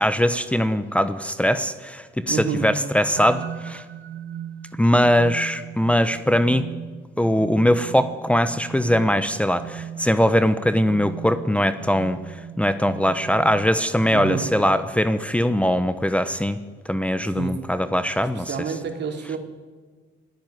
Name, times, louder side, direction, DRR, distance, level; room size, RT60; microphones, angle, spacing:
voice 1, 0.0-3.8 4.8-6.6 7.2-16.6 16.9-18.7, equal, 5° left, 11 dB, 1.0 m, -21 dB
voice 2, 2.3-2.7 14.1-14.5 17.3-17.6 18.5-19.4, right 6 dB, 60° right, 3 dB, 4.1 m, -28 dB
sound 1, 3.2-14.9, right 9 dB, 75° right, 1.4 m, -38 dB
26.5 x 16.0 x 9.4 m, 1.5 s
cardioid pair, 90°, 20 cm